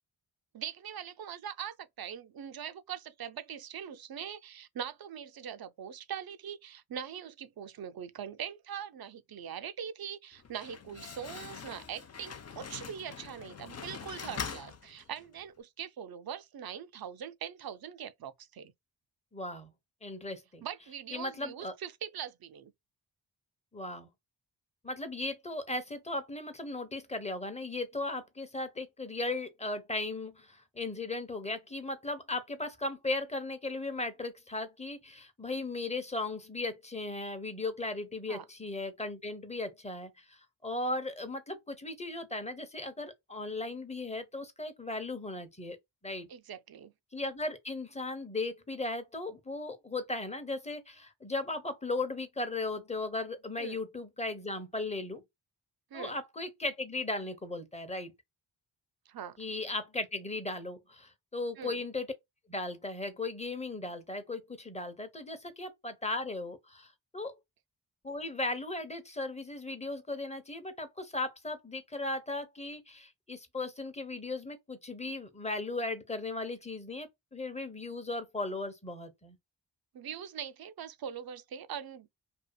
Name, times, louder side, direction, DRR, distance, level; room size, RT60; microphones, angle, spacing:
voice 1, 0.5-18.7 20.6-22.7 38.3-38.4 46.3-46.9 53.6-53.8 55.9-56.1 59.1-59.4 61.6-61.8 79.9-82.1, right 8 dB, 55° right, 0.5 m, -42 dB
Slam, 10.3-15.4, left 6 dB, 35° left, 0.5 m, -43 dB
voice 2, 19.3-19.7 20.0-20.6 21.1-21.7 23.7-24.1 24.8-45.8 46.0-46.3 47.1-55.2 55.9-58.1 59.4-62.1 62.5-67.3 68.0-79.4, left 2 dB, 15° left, 0.8 m, -37 dB
2.8 x 2.3 x 2.2 m
cardioid pair, 50°, 46 cm